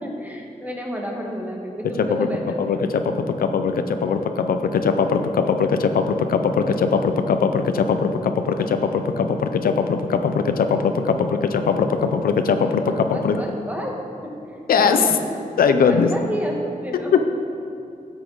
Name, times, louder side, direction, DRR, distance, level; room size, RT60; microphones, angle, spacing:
voice 1, 0.0-2.6 12.8-13.9 14.2-14.3 14.8-15.4 15.9-17.3, equal, 10° right, -1 dB, 1.4 m, -31 dB
voice 2, 2.0-2.3 2.6-13.4 14.7-15.1 15.6-16.1 17.1-17.3, left 5 dB, 85° left, 7 dB, 0.7 m, -20 dB
13.5 x 8.3 x 4.0 m, 2.5 s
wide cardioid pair, 155°, 15 cm